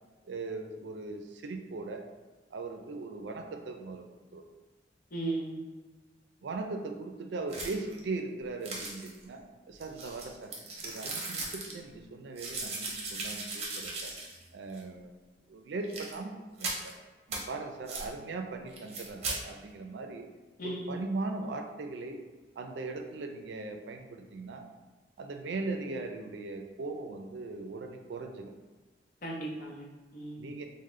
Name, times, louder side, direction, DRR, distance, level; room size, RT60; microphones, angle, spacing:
voice 1, 0.2-2.0 2.5-4.1 4.3-4.4 6.4-10.5 10.8-14.1 14.5-15.1 15.5-16.3 16.6-16.9 17.3-20.3 20.6-22.2 22.6-24.7 25.2-28.5 30.4-30.6, right 3 dB, 75° right, 4 dB, 0.4 m, -39 dB
voice 2, 5.1-5.6 20.6-21.0 29.2-30.5, right 2 dB, 50° left, -2 dB, 0.8 m, -36 dB
sound 1, 7.5-8.0 8.6-9.2 9.8-11.8 12.4-14.5 14.7-14.8 15.8-16.1 16.6-16.9 17.3-17.4 17.9-18.1 18.7-19.4, right 3 dB, 35° right, 0.7 m, -38 dB
3.7 x 2.1 x 3.1 m, 1.3 s
head